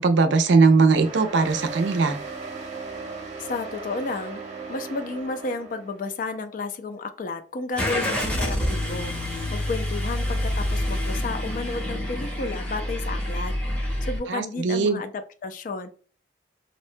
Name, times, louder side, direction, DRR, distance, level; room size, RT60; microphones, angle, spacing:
voice 1, 0.0-2.2 14.3-15.0, right 4 dB, 75° right, 8 dB, 0.5 m, -19 dB
sound 1, 0.9-6.0, right 4 dB, 40° right, 0.7 m, -37 dB
voice 2, 3.4-4.4 4.7-9.1 9.5-13.5 14.0-15.9, left 3 dB, 45° left, 9 dB, 0.3 m, -32 dB
Car / Engine starting, 7.8-14.2, left 1 dB, 5° left, 0.7 m, -27 dB
2.7 x 2.2 x 2.5 m, 0.41 s
head